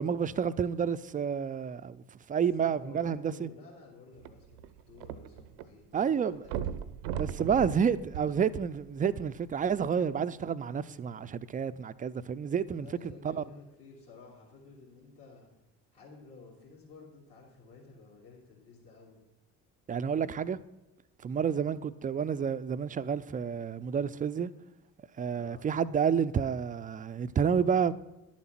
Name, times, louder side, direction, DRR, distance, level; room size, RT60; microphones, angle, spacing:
voice 1, 0.0-2.0 2.3-3.5 5.9-6.5 7.1-12.9 13.2-13.4 19.9-20.6 21.2-24.5 25.2-27.9, right 7 dB, 20° right, 0.4 m, -30 dB
voice 2, 2.6-6.6 8.1-8.2 12.7-15.5 15.9-19.2 20.1-20.3 21.2-21.4 25.3-25.7, left 4 dB, 60° left, 3.0 m, -53 dB
sound 1, 4.2-5.7 5.9-6.0 6.4-9.0 9.7-9.8, right 9 dB, 70° right, 0.7 m, -37 dB
11.0 x 7.2 x 5.8 m
figure-of-eight pair, 45°, 48 cm